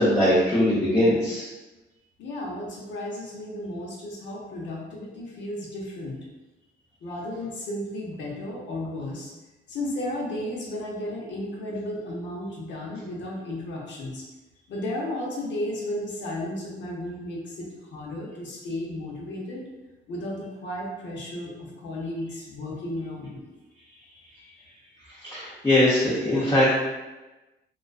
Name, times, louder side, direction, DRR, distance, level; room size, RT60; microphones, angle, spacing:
voice 1, 0.0-1.5 25.2-26.8, left 1 dB, 15° left, -9 dB, 0.7 m, -21 dB
voice 2, 2.2-6.2 7.0-9.3 9.7-14.2 14.7-19.6 20.1-23.5, left 1 dB, 65° left, -3 dB, 0.8 m, -34 dB
2.3 x 2.3 x 2.3 m, 1.1 s
cardioid pair, 90°, 20 cm